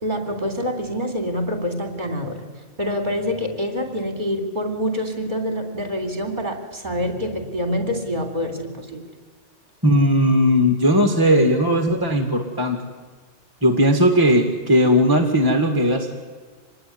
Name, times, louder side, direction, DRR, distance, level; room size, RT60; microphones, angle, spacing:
voice 1, 0.0-2.4 2.8-9.0, equal, 40° right, 6 dB, 3.6 m, -26 dB
voice 2, 9.8-12.8 13.6-16.1, equal, 20° right, 5 dB, 2.1 m, -17 dB
26.0 x 20.5 x 9.6 m, 1.5 s
omnidirectional pair, 1.2 m